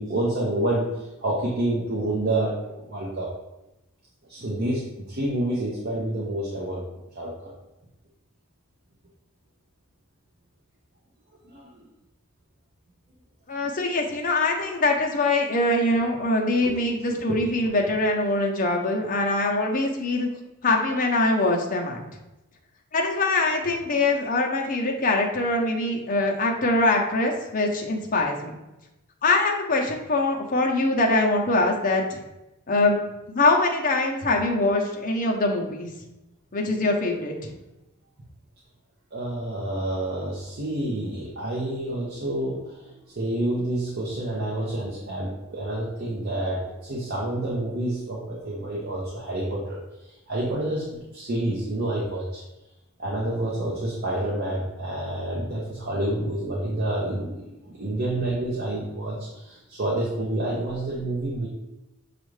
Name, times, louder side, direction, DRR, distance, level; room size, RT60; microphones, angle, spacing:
voice 1, 0.0-2.5 2.8-3.3 4.3-6.8 7.1-7.5 11.5-11.7 16.6-16.8 17.1-17.4 39.1-49.8 50.1-52.4 53.0-61.5, right 1 dB, 50° right, -5 dB, 0.8 m, -28 dB
voice 2, 13.5-20.3 20.6-22.0 22.9-28.6 29.2-32.2 32.7-33.0 33.3-35.9 36.5-37.5, left 2 dB, 40° left, 1 dB, 0.6 m, -23 dB
6.3 x 2.5 x 3.2 m, 0.98 s
head